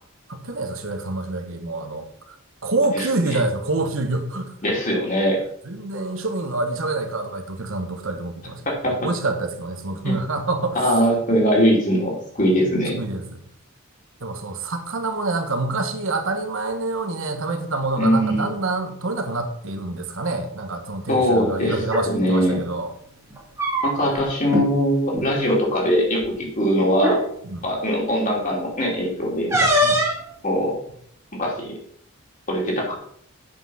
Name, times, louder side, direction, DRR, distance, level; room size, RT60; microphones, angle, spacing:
voice 1, 0.3-2.4 2.6-4.5 5.6-11.0 13.0-13.2 14.2-22.9 24.0-24.2 27.4-27.6 29.5-30.0, right 2 dB, 70° right, 6 dB, 1.2 m, -27 dB
voice 2, 2.9-3.4 4.6-5.4 8.7-8.9 10.0-10.2 10.7-13.0 18.0-18.6 21.1-21.8 22.1-22.6 23.8-27.2 27.6-29.5 30.4-30.7 31.3-31.8 32.5-32.9, equal, 35° left, -2 dB, 2.8 m, -21 dB
sound 1, 21.8-22.1 23.3-24.2 24.5-24.7 25.0-25.3 26.2-26.3 27.0-27.2 29.5-30.2, equal, 15° right, 2.1 m, -21 dB
8.4 x 6.0 x 5.5 m, 0.66 s
head